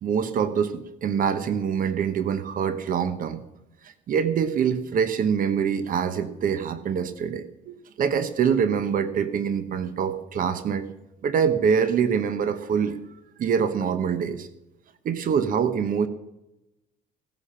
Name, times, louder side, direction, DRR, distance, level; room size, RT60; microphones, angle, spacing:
voice 1, 0.0-3.4 3.8-10.9 11.2-13.0 13.4-14.5 15.0-16.1, right 7 dB, 55° right, 12 dB, 1.0 m, -25 dB
16.5 x 10.0 x 5.8 m, 0.93 s
cardioid pair, 110°, 17 cm